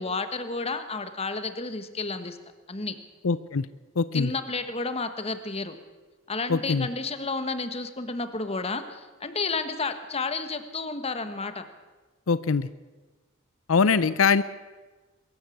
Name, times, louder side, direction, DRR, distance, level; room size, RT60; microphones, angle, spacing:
voice 1, 0.0-2.4 2.7-3.0 4.1-5.8 6.3-11.6, left 3 dB, 30° left, 10 dB, 1.4 m, -31 dB
voice 2, 3.2-3.7 4.0-4.3 6.5-6.9 12.3-12.7 13.7-14.4, left 5 dB, 85° left, 16 dB, 0.6 m, -22 dB
22.5 x 14.0 x 8.4 m, 1.3 s
head